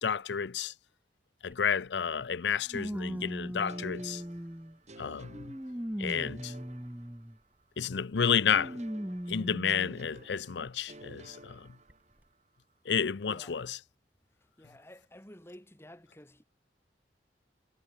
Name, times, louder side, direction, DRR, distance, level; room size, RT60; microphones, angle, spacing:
voice 1, 0.0-0.7 1.4-4.2 5.0-5.5 6.0-6.5 7.8-8.8 9.3-11.7 12.9-13.8, left 7 dB, 75° left, 0.6 m, -31 dB
sound 1, 1.5-1.6 2.7-4.8 5.3-7.4 8.5-10.0 10.7-10.8 11.9-12.0, equal, 10° right, 1.3 m, -39 dB
sound 2, 3.7-7.6 8.5-12.3, right 1 dB, 40° right, 5.5 m, -53 dB
voice 2, 13.2-13.7 14.4-16.4, left 1 dB, 15° left, 5.1 m, -52 dB
head